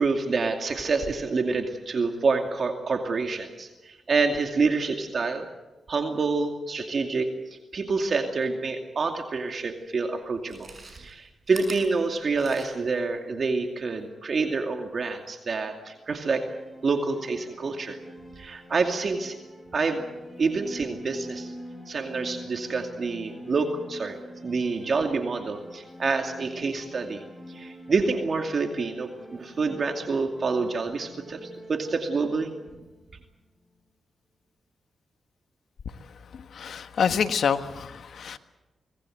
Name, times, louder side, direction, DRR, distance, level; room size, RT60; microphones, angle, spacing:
voice 1, 0.0-5.5 5.9-7.3 7.7-10.7 11.0-16.5 16.8-18.0 18.4-19.4 19.7-20.1 20.4-21.5 21.9-24.2 24.4-27.2 27.5-32.5, right 4 dB, 55° right, 4 dB, 2.4 m, -27 dB
Chewing mastication, 9.6-9.7 10.4-13.0 13.4-13.5, right 3 dB, 40° right, 7.1 m, -44 dB
sound 1, 15.9-33.8, equal, 10° left, 7.7 m, -45 dB
voice 2, 36.3-38.4, left 7 dB, 70° left, 9 dB, 1.4 m, -27 dB
25.0 x 19.5 x 7.9 m, 1.1 s
cardioid pair, 70°, 0 cm